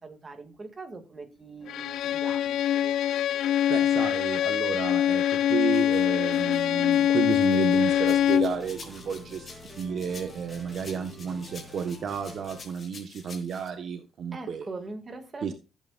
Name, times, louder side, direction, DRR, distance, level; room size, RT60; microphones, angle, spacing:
voice 1, 0.0-3.0 14.3-15.5, right 3 dB, 25° right, 2.2 m, -42 dB
Bowed string instrument, 1.7-8.6, left 11 dB, 85° left, 0.4 m, -24 dB
voice 2, 3.7-14.7 15.4-15.5, right 7 dB, 55° right, 1.3 m, -32 dB
sound 1, 5.7-12.6, left 1 dB, 5° left, 3.8 m, -48 dB
sound 2, 8.0-13.7, left 4 dB, 35° left, 3.6 m, -48 dB
15.0 x 8.5 x 2.5 m
cardioid pair, 150°, 0 cm